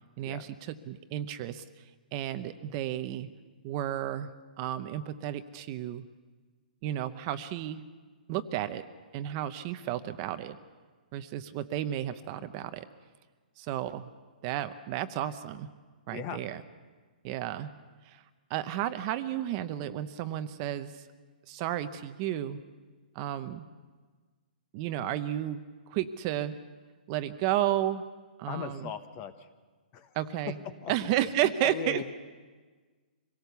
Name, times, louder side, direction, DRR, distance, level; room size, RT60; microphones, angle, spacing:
voice 1, 0.2-1.6 2.1-3.3 3.6-4.3 4.6-6.0 6.8-7.8 8.3-8.8 9.1-10.6 11.1-12.8 13.6-14.1 14.4-15.7 16.1-16.6 17.2-17.7 18.0-18.2 18.5-20.9 21.5-22.6 23.1-23.7 24.7-26.6 27.1-28.0 28.4-28.9 30.1-30.6 30.9-32.0, right 12 dB, 30° right, 10 dB, 0.7 m, -32 dB
voice 2, 16.1-16.4 28.5-29.5 29.9-30.1 30.8-32.0, left 8 dB, 25° left, 11 dB, 1.0 m, -39 dB
25.5 x 18.0 x 6.9 m, 1.4 s
hypercardioid pair, 160°, 5 cm